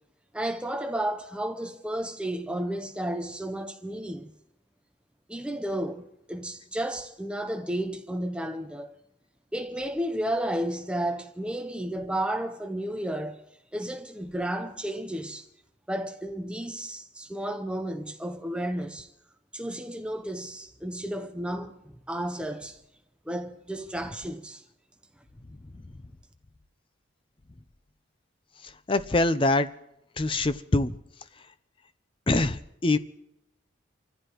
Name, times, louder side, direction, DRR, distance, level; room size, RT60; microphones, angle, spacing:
voice 1, 0.3-4.3 5.3-9.0 9.5-13.4 13.7-15.5 15.9-19.1 19.5-22.8 23.3-24.6, right 1 dB, 5° right, 0.8 m, -32 dB
voice 2, 28.9-29.7 30.2-31.0 32.3-33.0, left 2 dB, 25° left, 0.5 m, -24 dB
29.5 x 15.0 x 3.0 m
head